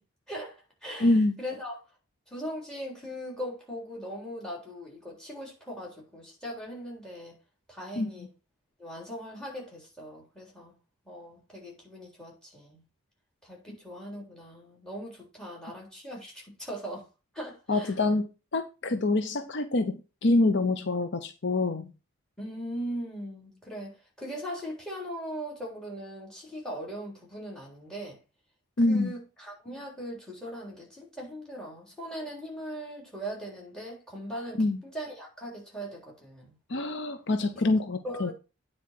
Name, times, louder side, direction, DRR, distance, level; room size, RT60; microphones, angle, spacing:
voice 1, 0.3-1.9 2.3-7.3 7.7-8.3 8.8-10.8 11.1-12.8 13.4-17.1 17.3-18.0 22.4-28.2 28.9-36.6 37.6-37.7 38.0-38.3, equal, 5° left, 3.6 m, -40 dB
voice 2, 1.0-1.4 8.0-8.1 13.7-13.8 17.7-21.9 28.8-29.1 34.6-34.8 36.7-38.3, left 2 dB, 55° left, 0.7 m, -26 dB
9.5 x 4.3 x 5.9 m
head